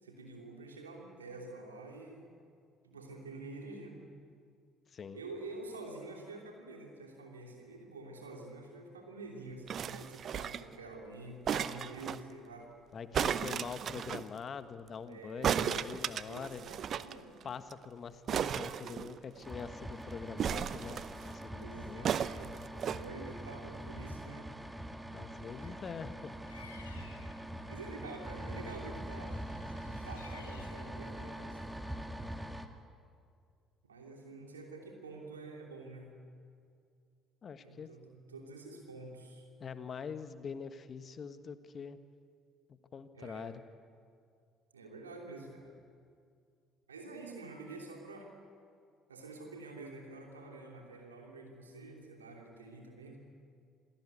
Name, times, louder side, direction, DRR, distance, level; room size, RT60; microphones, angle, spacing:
voice 1, 0.0-2.3 2.8-4.0 5.1-12.7 15.1-15.9 16.3-17.4 21.5-24.5 25.6-26.0 26.9-27.2 27.7-29.4 29.8-31.6 33.8-36.1 37.6-39.5 43.1-43.5 44.7-45.7 46.9-48.3 49.1-53.2, right 2 dB, 90° right, 1 dB, 3.1 m, -48 dB
sound 1, 9.7-10.8 11.5-12.2 13.1-14.2 15.4-17.1 17.4-17.5 17.7-17.9 18.3-19.5 20.4-21.3 22.0-23.0 23.7-23.8, right 8 dB, 50° right, 0.7 m, -34 dB
voice 2, 12.9-16.7 17.4-22.1 25.1-26.3 37.4-37.9 39.6-42.0 42.9-43.5, left 6 dB, 45° left, 11 dB, 1.4 m, -44 dB
sound 2, 19.4-32.7, right 1 dB, 5° right, 2.0 m, -43 dB
Bird vocalization bird call bird song, 26.4-27.4 29.3-30.9, left 5 dB, 90° left, 1.7 m, -56 dB
27.5 x 18.0 x 8.4 m, 2.3 s
hypercardioid pair, 55°, 0 cm